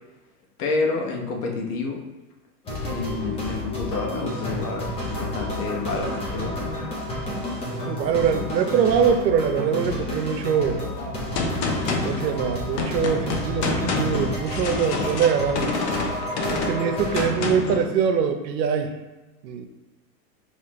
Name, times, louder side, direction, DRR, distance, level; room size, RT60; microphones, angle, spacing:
voice 1, 0.6-2.0 2.8-6.8 16.2-16.3, left 3 dB, 65° left, 1 dB, 1.1 m, -29 dB
sound 1, 2.7-17.3, left 1 dB, 10° left, 0.5 m, -30 dB
voice 2, 7.8-10.8 12.0-15.7 16.4-18.9 19.4-19.6, right 7 dB, 90° right, 6 dB, 0.8 m, -23 dB
Gunshot gunfire, 11.3-17.8, left 3 dB, 45° left, 0.7 m, -27 dB
5.1 x 3.0 x 2.9 m, 1.1 s
supercardioid pair, 145°, 50 cm